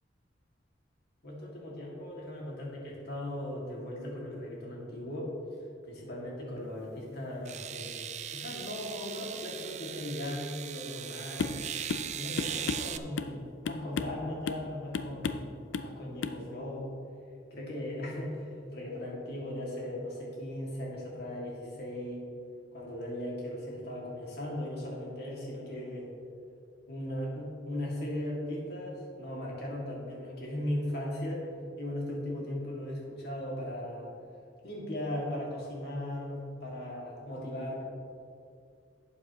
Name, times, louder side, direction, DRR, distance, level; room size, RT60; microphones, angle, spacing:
voice 1, 1.2-5.3 5.9-8.0 8.3-11.5 12.2-16.9 17.5-22.2 22.7-26.1 26.9-31.5 31.8-34.1 34.6-37.8, left 1 dB, 60° left, -4 dB, 2.4 m, -38 dB
sound 1, 6.6-6.7 7.4-13.0, right 9 dB, 40° right, 0.4 m, -39 dB
sound 2, 11.4-11.6 11.9-12.1 12.4-13.4 13.7-14.2 14.5-14.7 14.9-15.5 15.7-15.9 16.2-16.4, left 4 dB, 80° left, 0.5 m, -33 dB
12.0 x 8.5 x 3.1 m, 2.4 s
head